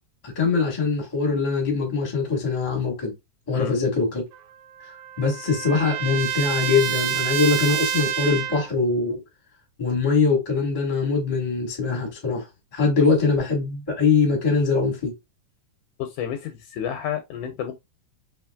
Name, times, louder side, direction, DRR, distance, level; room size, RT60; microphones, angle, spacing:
voice 1, 0.2-3.1 3.5-4.2 5.2-9.2 9.8-12.4 12.7-15.1, left 4 dB, 30° left, 0.6 m, -22 dB
Trumpet, 4.3-8.7, right 11 dB, 90° right, 2.2 m, -28 dB
voice 2, 16.0-17.8, left 9 dB, 80° left, 1.9 m, -30 dB
4.9 x 2.9 x 2.2 m
omnidirectional pair, 3.8 m